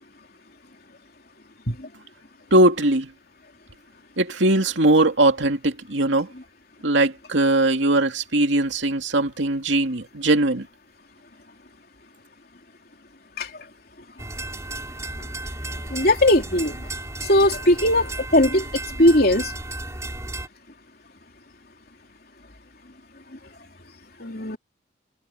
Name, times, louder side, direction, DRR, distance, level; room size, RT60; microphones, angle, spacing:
voice 1, 2.5-3.1 4.2-6.3 6.8-10.7, right 1 dB, 75° right, 2.5 m, -20 dB
sound 1, 14.2-20.5, right 2 dB, 15° right, 7.6 m, -34 dB
voice 2, 15.9-16.8 17.3-18.7 19.0-19.5 24.2-24.6, left 1 dB, 50° left, 3.5 m, -18 dB
head